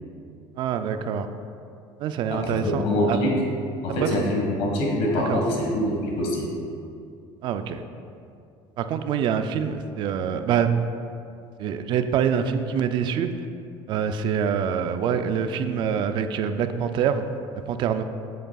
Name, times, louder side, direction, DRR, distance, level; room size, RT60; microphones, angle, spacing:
voice 1, 0.6-1.3 2.0-3.2 4.0-4.1 5.3-5.4 7.4-7.8 8.8-10.7 11.6-13.3 13.9-17.2 17.7-18.0, right 7 dB, 45° right, 9 dB, 0.4 m, -25 dB
voice 2, 2.3-3.3 3.8-6.5, left 1 dB, 65° left, -2 dB, 1.5 m, -25 dB
7.8 x 7.3 x 2.3 m, 2.5 s
cardioid pair, 150°, 11 cm